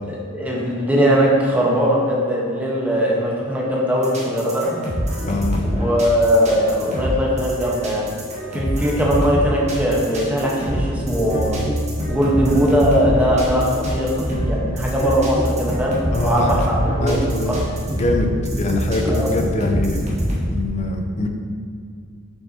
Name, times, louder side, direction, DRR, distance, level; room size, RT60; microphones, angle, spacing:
voice 1, 0.1-4.7 5.6-8.1 8.5-11.6 12.1-15.9 16.2-17.1 17.5-17.6 19.1-19.3, equal, 5° right, -4 dB, 1.1 m, -20 dB
sound 1, 4.0-20.4, equal, 30° right, 1.5 m, -25 dB
voice 2, 5.2-5.6 16.1-16.5 17.0-17.6 17.9-20.1 20.5-21.3, left 2 dB, 30° left, 4 dB, 0.6 m, -23 dB
7.3 x 6.9 x 2.9 m, 2.2 s
head